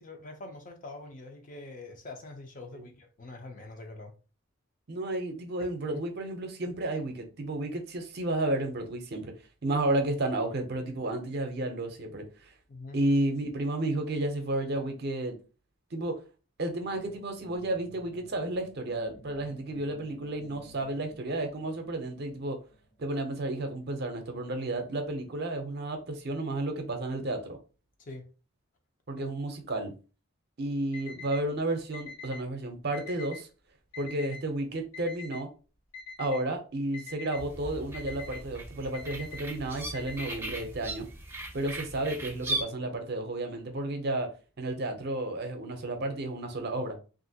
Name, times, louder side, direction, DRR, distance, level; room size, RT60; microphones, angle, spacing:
voice 1, 0.0-4.1 5.9-6.0 12.7-13.0 28.0-28.3 29.2-29.3, left 2 dB, 40° left, 0.6 m, -44 dB
voice 2, 4.9-9.3 9.6-12.5 12.9-15.4 15.9-16.2 16.6-22.6 23.0-27.6 29.1-29.9 30.6-33.5 34.0-35.5 36.2-41.1 41.5-44.3 44.6-47.0, right 2 dB, 55° right, 0.6 m, -32 dB
sound 1, 16.7-23.5, right 1 dB, 60° left, 1.4 m, -55 dB
Alarm, 30.9-31.4 31.9-32.4 32.9-33.4 33.9-34.4 34.9-35.4 35.9-36.4 36.9-37.4 37.9-38.4 38.9-39.4 39.9-40.5, left 4 dB, 85° left, 1.4 m, -43 dB
sound 2, 37.3-42.6, right 2 dB, 10° right, 0.6 m, -38 dB
2.9 x 2.5 x 2.7 m
head